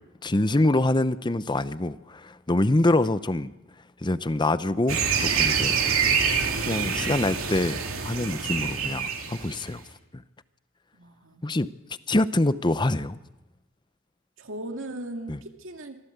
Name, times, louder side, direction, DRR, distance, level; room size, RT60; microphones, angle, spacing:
voice 1, 0.2-3.5 4.0-5.7 6.7-9.8 10.1-10.2 11.4-11.7 12.1-13.2 15.3-15.4, left 2 dB, 20° left, 0.7 m, -25 dB
sound 1, 4.9-9.8, right 6 dB, 80° right, 2.8 m, -26 dB
voice 2, 10.9-11.4 14.4-16.0, right 1 dB, 65° right, 2.2 m, -38 dB
25.5 x 16.0 x 8.1 m
head